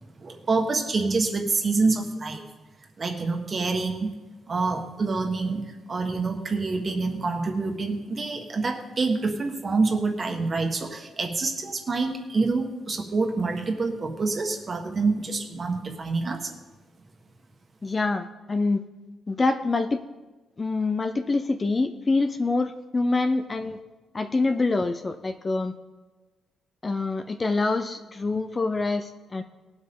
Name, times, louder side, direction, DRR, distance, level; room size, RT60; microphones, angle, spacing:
voice 1, 0.2-2.5 3.0-4.1 4.5-16.5, right 3 dB, 30° right, 3 dB, 1.5 m, -27 dB
voice 2, 17.8-18.8 19.3-20.0 20.6-23.8 24.1-25.7 26.8-29.4, left 3 dB, 20° left, 8 dB, 0.5 m, -25 dB
19.0 x 7.9 x 3.8 m, 1.2 s
cardioid pair, 145°, 0 cm